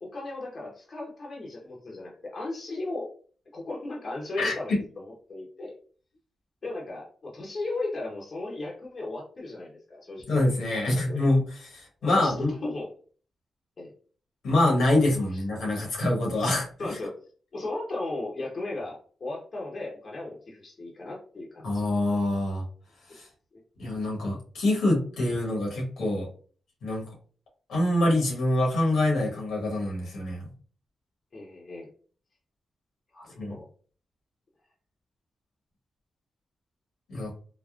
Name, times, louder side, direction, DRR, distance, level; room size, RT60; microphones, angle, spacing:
voice 1, 0.0-3.1 3.5-5.7 6.6-10.5 10.9-11.2 12.0-12.3 12.6-12.9 13.8-13.9 15.3-15.4 16.8-17.2 17.5-21.9 23.5-23.6 31.3-31.9 33.1-33.6, left 2 dB, 50° left, -2 dB, 0.9 m, -36 dB
voice 2, 4.4-4.8 10.3-12.5 14.4-17.0 21.6-22.6 23.1-23.3 23.8-26.3 26.8-27.0 27.7-30.5 33.4-33.6 37.1-37.3, left 1 dB, 80° left, -2 dB, 1.2 m, -25 dB
3.5 x 2.1 x 2.4 m, 0.42 s
cardioid pair, 60°, 0 cm